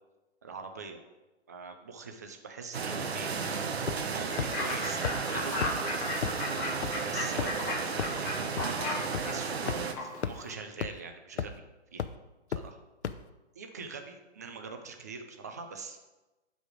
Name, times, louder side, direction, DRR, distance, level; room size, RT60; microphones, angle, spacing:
voice 1, 0.4-1.0 1.5-3.7 4.1-6.1 7.0-8.3 9.1-11.6 11.9-12.0 12.5-12.8 13.5-16.0, right 4 dB, 15° right, 5 dB, 0.4 m, -44 dB
sound 1, 2.7-9.9, right 5 dB, 65° right, 1.3 m, -34 dB
sound 2, 3.9-4.1 4.4-4.5 5.0-5.1 5.6-5.7 6.2-6.3 6.8-6.9 7.4-7.6 8.0-8.1 8.6-8.7 9.1-9.2 9.7-9.8 10.2-10.3 10.8-10.9 11.4-11.6 12.0-12.1 12.5-12.6 13.0-13.1, left 8 dB, 70° left, 0.7 m, -31 dB
Fowl / Bird, 4.3-10.5, left 2 dB, 20° left, 2.1 m, -36 dB
12.5 x 5.1 x 5.0 m, 1.1 s
hypercardioid pair, 150°, 34 cm